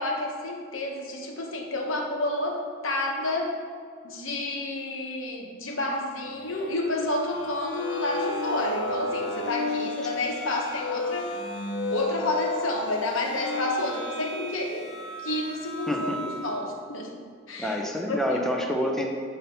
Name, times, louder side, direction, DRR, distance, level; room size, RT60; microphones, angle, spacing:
voice 1, 0.0-3.6 4.0-11.4 11.9-14.9 15.2-17.1 17.5-17.8 18.1-18.4, left 2 dB, 85° left, 1 dB, 0.9 m, -30 dB
sound 1, 6.4-16.7, left 2 dB, 60° left, 0.6 m, -33 dB
voice 2, 15.9-16.2 17.6-19.1, left 1 dB, ahead, 0 dB, 0.5 m, -27 dB
7.0 x 2.7 x 5.7 m, 2.1 s
head